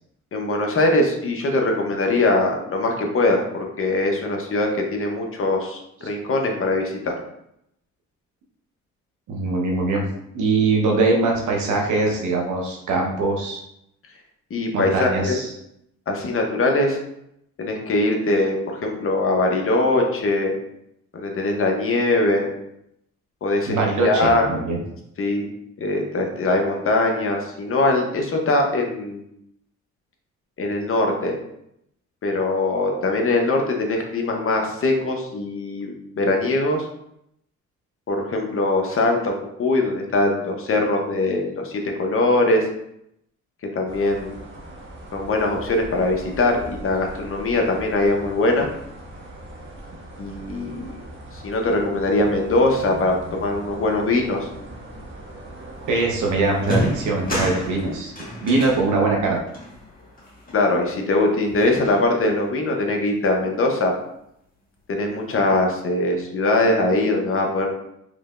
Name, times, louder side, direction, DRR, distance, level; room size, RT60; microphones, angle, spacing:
voice 1, 0.3-7.2 14.5-15.4 16.1-17.0 17.6-20.5 21.1-22.5 23.4-23.8 24.0-24.4 25.2-25.5 25.8-29.2 30.6-31.4 32.2-36.9 38.1-42.6 43.7-44.3 45.1-48.7 50.2-50.9 51.3-54.5 60.5-63.9 64.9-67.7, left 2 dB, 45° left, 2 dB, 0.9 m, -22 dB
voice 2, 9.3-10.1 10.3-13.6 14.7-15.5 23.7-24.8 55.9-58.1 58.4-59.4, right 3 dB, 75° right, 0 dB, 1.1 m, -22 dB
sound 1, 43.9-58.0, right 1 dB, 40° right, 1.2 m, -40 dB
sound 2, 56.0-56.1 56.6-61.1 61.5-62.5, left 1 dB, 30° left, 1.5 m, -31 dB
4.9 x 3.2 x 2.5 m, 0.78 s
cardioid pair, 90°, 30 cm